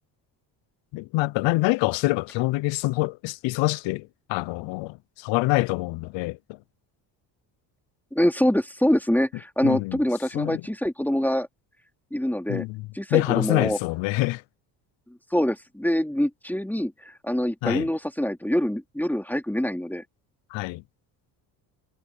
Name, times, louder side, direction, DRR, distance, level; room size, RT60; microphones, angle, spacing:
voice 1, 0.9-6.6 9.6-10.0 10.3-10.6 12.5-12.9 13.1-14.4 17.6-17.9 20.5-20.8, left 21 dB, 75° left, 0.8 m, -26 dB
voice 2, 8.1-11.5 12.1-12.6 12.9-13.8 15.3-20.0, equal, 5° left, 2.7 m, -25 dB
supercardioid pair, 85°, 46 cm